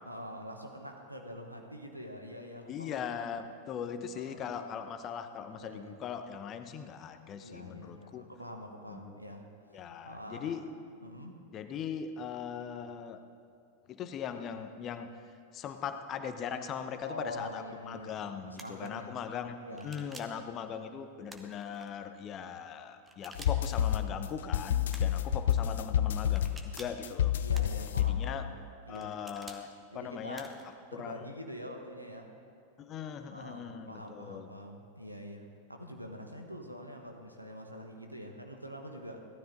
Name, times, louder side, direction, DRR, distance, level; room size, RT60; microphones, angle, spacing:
voice 1, 0.1-3.0 4.1-4.5 5.6-6.0 7.4-9.5 9.7-10.6 11.0-11.4 17.0-19.2 19.7-19.9 27.4-28.6 28.9-29.2 29.9-30.5 30.9-32.3 33.3-39.2, equal, 90° right, 3 dB, 1.3 m, -45 dB
voice 2, 2.7-8.3 8.9-9.2 9.7-10.7 11.5-13.2 13.9-15.1 15.5-19.6 19.8-27.3 28.0-28.4 28.9-30.5 30.9-31.3 32.8-34.5, left 7 dB, 30° left, 9 dB, 0.8 m, -40 dB
sound 1, 18.6-18.9 19.8-20.4 21.3-21.9 23.0-23.8 24.9-25.3 26.3-27.0 27.5-28.1 28.9-29.6 30.3-30.7, right 2 dB, 10° right, 1.1 m, -50 dB
sound 2, 23.4-28.6, left 10 dB, 60° left, 0.4 m, -30 dB
17.0 x 12.5 x 4.0 m, 2.3 s
figure-of-eight pair, 90°, 0 cm